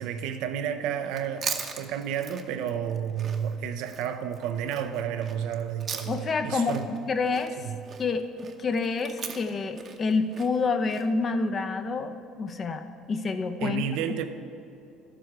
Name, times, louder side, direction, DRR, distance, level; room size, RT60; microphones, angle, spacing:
voice 1, 0.0-6.9 7.6-7.8 13.6-14.3, right 8 dB, 75° right, 0.6 m, -31 dB
Chewing mastication, 1.0-6.4 6.7-11.1, right 6 dB, 45° right, 0.8 m, -39 dB
voice 2, 6.1-7.5 8.0-8.2 8.6-13.9, left 4 dB, 40° left, 0.7 m, -28 dB
11.5 x 7.6 x 4.6 m
supercardioid pair, 90°, 0 cm